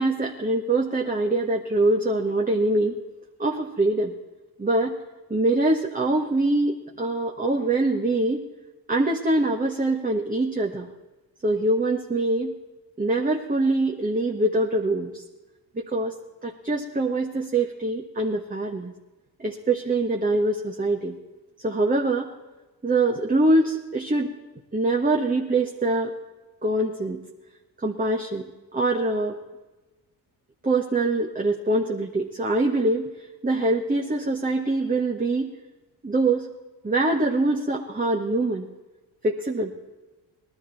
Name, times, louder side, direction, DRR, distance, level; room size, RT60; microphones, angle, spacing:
voice 1, 0.0-3.0 3.4-4.1 4.6-4.9 5.3-8.4 8.9-10.9 11.4-12.5 13.0-15.2 15.7-16.1 16.4-18.9 19.4-21.2 21.6-22.3 22.8-24.3 24.7-26.1 26.6-27.2 27.8-29.4 30.6-35.5 36.0-36.5 36.8-38.7 39.2-39.7, right 2 dB, 20° right, 0 dB, 1.6 m, -24 dB
19.0 x 12.0 x 4.3 m, 1.1 s
supercardioid pair, 60°, 44 cm